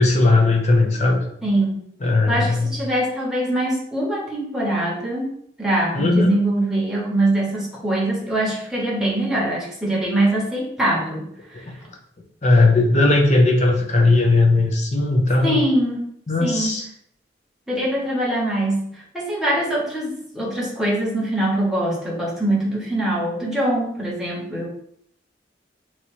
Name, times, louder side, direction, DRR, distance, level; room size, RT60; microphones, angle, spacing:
voice 1, 0.0-1.2 2.0-2.7 5.9-6.4 11.6-11.7 12.4-15.6 16.3-16.9, left 2 dB, 40° left, 1 dB, 0.7 m, -17 dB
voice 2, 1.4-1.9 2.3-5.3 5.6-11.7 15.4-16.0 16.4-16.7 17.7-24.7, right 1 dB, ahead, -5 dB, 1.2 m, -23 dB
3.1 x 2.8 x 4.4 m, 0.68 s
head